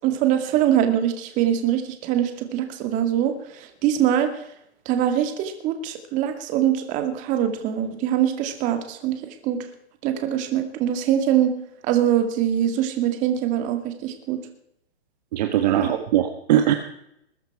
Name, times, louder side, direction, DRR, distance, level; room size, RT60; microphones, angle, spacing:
voice 1, 0.0-4.4 4.9-9.6 10.0-11.5 11.8-14.4 15.8-15.9, right 10 dB, 25° right, 7 dB, 2.1 m, -23 dB
voice 2, 15.3-16.7, right 11 dB, 40° right, 6 dB, 1.4 m, -20 dB
21.0 x 11.0 x 4.9 m, 0.74 s
hypercardioid pair, 150°, 32 cm